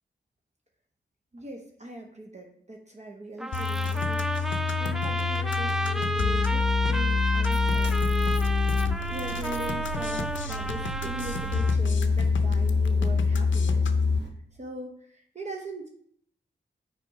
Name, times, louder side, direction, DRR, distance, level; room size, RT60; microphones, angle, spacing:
voice 1, 1.3-4.4 4.8-8.7 9.1-13.9 14.5-15.9, right 1 dB, 35° right, 1 dB, 0.8 m, -41 dB
sound 1, 3.4-11.8, right 1 dB, ahead, 0.4 m, -32 dB
sound 2, 3.5-14.2, left 4 dB, 85° left, 0.5 m, -26 dB
sound 3, 7.6-14.3, equal, 65° right, 1.1 m, -41 dB
5.8 x 4.2 x 4.9 m, 0.65 s
wide cardioid pair, 70°, 19 cm